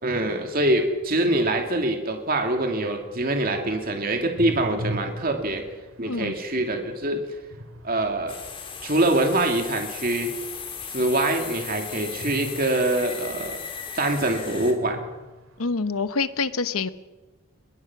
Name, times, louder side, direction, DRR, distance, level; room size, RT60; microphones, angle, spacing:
voice 1, 0.0-5.6 6.0-7.2 7.8-8.4 8.8-10.3 10.9-13.6 13.9-15.0, right 1 dB, 40° right, 3 dB, 2.4 m, -24 dB
sound 1, 0.7-10.9 12.2-14.1 14.5-16.1, right 1 dB, 70° right, 2.2 m, -41 dB
sound 2, 8.3-14.7, left 6 dB, 25° left, 2.6 m, -37 dB
voice 2, 15.6-16.9, left 4 dB, 75° left, 13 dB, 1.0 m, -26 dB
22.0 x 22.0 x 5.9 m, 1.1 s
head